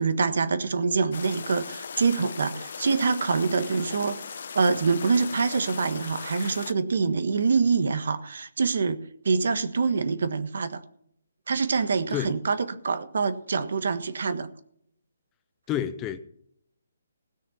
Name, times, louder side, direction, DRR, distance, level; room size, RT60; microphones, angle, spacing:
voice 1, 0.0-10.8 11.5-12.6 12.8-14.5, right 4 dB, 65° right, 11 dB, 1.4 m, -25 dB
sound 1, 1.1-6.7, left 6 dB, 50° left, 0.8 m, -39 dB
voice 2, 15.7-16.2, left 10 dB, 15° left, 12 dB, 0.5 m, -29 dB
17.0 x 6.4 x 7.3 m, 0.70 s
hypercardioid pair, 170°, 0 cm